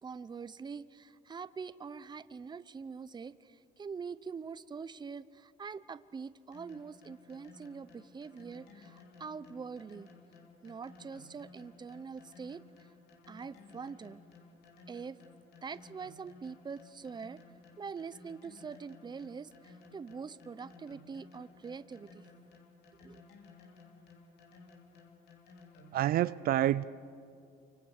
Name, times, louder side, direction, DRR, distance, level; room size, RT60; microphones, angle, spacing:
voice 1, 0.0-10.1 10.6-12.6 13.3-14.2 14.9-15.2 15.6-17.4 17.8-22.3 23.0-23.2, right 5 dB, 25° right, 15 dB, 0.8 m, -44 dB
sound 1, 6.5-26.2, left 3 dB, 70° left, 3.2 m, -57 dB
voice 2, 25.9-26.8, right 13 dB, 60° right, 15 dB, 0.5 m, -28 dB
28.5 x 25.0 x 6.6 m, 2.5 s
cardioid pair, 110°, 17 cm